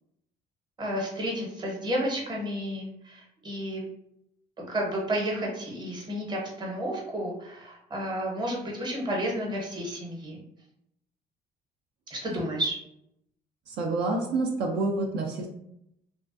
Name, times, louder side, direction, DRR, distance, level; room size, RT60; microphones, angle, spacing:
voice 1, 0.8-3.8 4.6-10.4 12.1-12.8, equal, 25° right, -2 dB, 0.8 m, -31 dB
voice 2, 13.7-15.5, right 3 dB, 80° right, 0 dB, 0.5 m, -28 dB
2.4 x 2.1 x 2.5 m, 0.78 s
cardioid pair, 110°, 17 cm